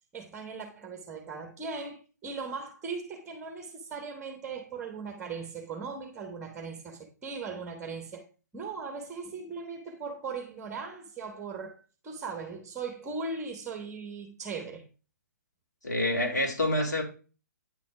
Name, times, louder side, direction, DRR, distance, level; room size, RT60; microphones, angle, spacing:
voice 1, 0.1-8.3 8.5-11.8 12.0-14.9, right 4 dB, 15° right, 1.1 m, -38 dB
voice 2, 15.8-17.0, left 1 dB, 75° left, 1.9 m, -27 dB
9.0 x 4.1 x 4.8 m
figure-of-eight pair, 125°, 9 cm